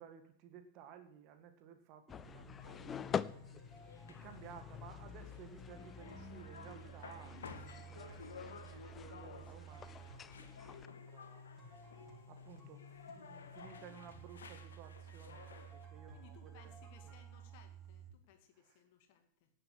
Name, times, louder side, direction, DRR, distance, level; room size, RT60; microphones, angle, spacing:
voice 1, 0.0-3.6 4.1-7.4 7.8-11.5 12.3-12.9 13.1-16.7 17.0-17.1 18.6-18.8, right 8 dB, 40° right, 7 dB, 2.0 m, -56 dB
sound 1, 2.1-10.9, left 7 dB, 20° left, 0.4 m, -46 dB
sound 2, 2.1-18.1, right 3 dB, 15° right, 7.1 m, -54 dB
sound 3, 2.6-15.8, left 6 dB, 65° left, 1.5 m, -55 dB
voice 2, 16.1-19.5, left 7 dB, 50° left, 6 dB, 2.2 m, -63 dB
18.0 x 7.8 x 6.3 m, 0.63 s
figure-of-eight pair, 90°, 0 cm